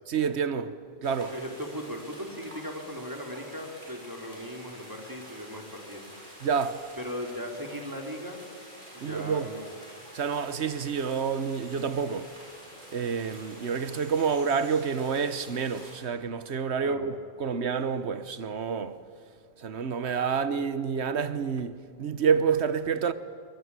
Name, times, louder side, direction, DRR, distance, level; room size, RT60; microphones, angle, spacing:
voice 1, 0.1-0.7 1.0-1.3 6.4-6.8 9.0-9.5 10.1-12.3 12.9-19.0 19.6-23.1, right 6 dB, 90° right, 1.3 m, -28 dB
sound 1, 1.0-16.0, equal, 50° right, 6.9 m, -48 dB
voice 2, 1.3-6.0 7.0-8.4 8.9-9.7 16.8-17.1, equal, 20° right, 3.2 m, -38 dB
23.5 x 20.5 x 9.6 m
omnidirectional pair, 1.1 m